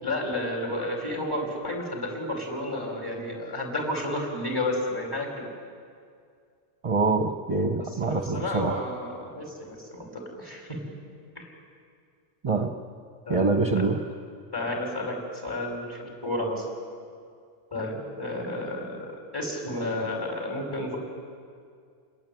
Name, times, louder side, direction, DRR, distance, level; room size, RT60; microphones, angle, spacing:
voice 1, 0.0-5.5 7.7-10.8 11.4-11.5 13.3-13.5 14.5-15.2 15.4-16.6 17.7-21.0, left 1 dB, 20° left, 1 dB, 6.1 m, -31 dB
voice 2, 6.8-8.8 12.4-12.7 13.3-14.0, right 3 dB, 30° right, 5 dB, 1.1 m, -25 dB
29.0 x 21.0 x 9.4 m, 2.2 s
omnidirectional pair, 1.2 m